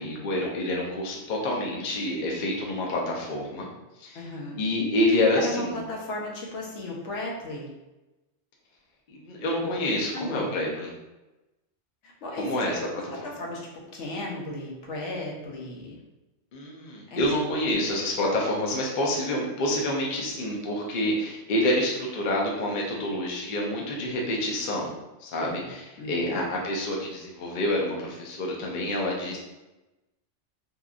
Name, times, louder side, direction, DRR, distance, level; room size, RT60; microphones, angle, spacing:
voice 1, 0.0-3.7 4.0-4.3 4.6-5.8 9.1-10.9 12.4-12.8 16.5-24.9 25.2-29.4, left 1 dB, 55° left, -2 dB, 0.6 m, -27 dB
voice 2, 4.1-4.6 5.4-7.7 9.6-9.8 10.1-10.5 12.0-12.8 13.2-16.0 17.1-17.2 25.4-25.7 26.0-26.5, left 1 dB, 75° left, -2 dB, 0.9 m, -35 dB
2.8 x 2.3 x 2.4 m, 1.0 s
omnidirectional pair, 1.2 m